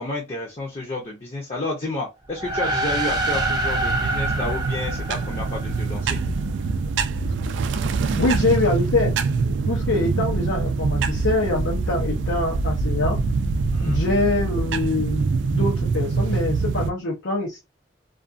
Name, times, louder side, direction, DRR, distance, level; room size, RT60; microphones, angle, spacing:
voice 1, 0.0-6.2 13.7-14.0, left 2 dB, 35° left, -1 dB, 0.6 m, -30 dB
sound 1, 2.3-6.0, right 1 dB, 20° right, 0.5 m, -26 dB
sound 2, 2.4-16.9, right 4 dB, 90° right, 0.3 m, -25 dB
voice 2, 8.2-9.1 9.7-13.2 13.8-17.6, left 2 dB, 85° left, -3 dB, 0.7 m, -24 dB
2.4 x 2.3 x 2.5 m, 0.23 s
head